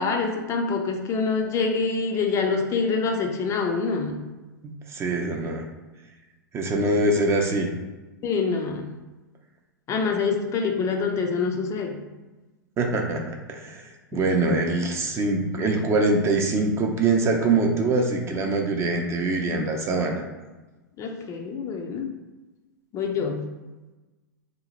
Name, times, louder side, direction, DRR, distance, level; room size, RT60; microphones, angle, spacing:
voice 1, 0.0-4.2 8.2-8.9 9.9-12.0 21.0-22.1 22.9-23.5, left 4 dB, 30° left, 2 dB, 0.5 m, -26 dB
voice 2, 4.6-5.6 6.5-7.7 12.8-20.2, right 2 dB, 25° right, 2 dB, 0.5 m, -24 dB
2.9 x 2.1 x 4.1 m, 1.2 s
hypercardioid pair, 100°, 11 cm